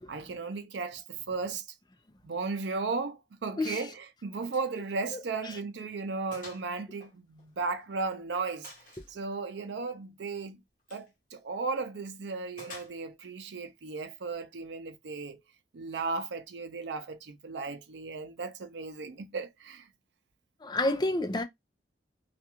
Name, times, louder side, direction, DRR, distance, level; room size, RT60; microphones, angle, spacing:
voice 1, 0.1-1.6 2.2-8.7 9.1-10.6 10.9-15.4 15.7-19.9, right 4 dB, 75° right, 0.5 m, -35 dB
Gunshot gunfire, 4.5-4.7 5.1-5.2 5.6-5.7 6.3-6.7 7.0-8.0 8.6-9.2 10.8-11.1 12.6-13.3, left 2 dB, 50° left, 1.0 m, -49 dB
voice 2, 5.1-5.6 9.0-9.1 20.6-21.4, left 2 dB, 25° left, 0.5 m, -30 dB
2.4 x 2.3 x 2.9 m
head